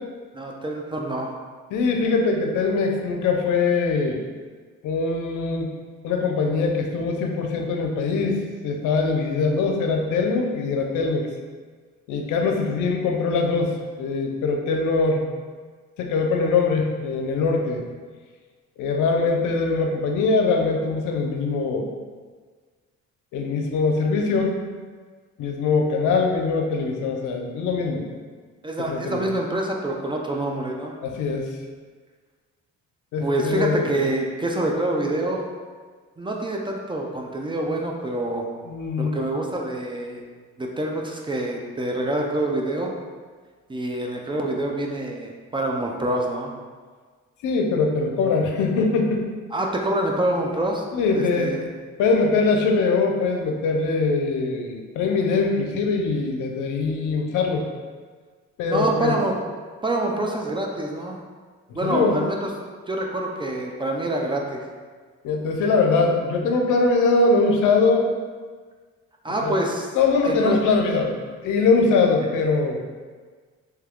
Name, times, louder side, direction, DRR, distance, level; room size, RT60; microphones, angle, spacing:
voice 1, 0.3-1.3 28.6-30.9 33.2-35.5 36.2-38.4 39.0-40.2 40.6-42.9 43.7-46.5 49.5-50.8 51.1-51.6 58.6-59.4 59.8-61.2 61.7-62.5 62.9-64.6 69.2-69.9 70.2-70.6, right 1 dB, 15° right, 0 dB, 0.4 m, -26 dB
voice 2, 1.7-4.2 4.8-5.7 6.0-11.3 12.1-15.2 16.0-17.8 18.8-21.9 23.3-24.6 25.4-28.1 28.9-29.3 31.0-31.5 33.1-33.9 38.7-39.1 47.4-49.3 50.9-51.5 52.0-57.6 58.6-59.2 61.8-62.2 65.2-68.1 69.4-69.5 69.9-71.1 71.4-72.8, left 4 dB, 85° left, 2 dB, 0.5 m, -22 dB
3.2 x 2.3 x 3.5 m, 1.5 s
cardioid pair, 90°, 30 cm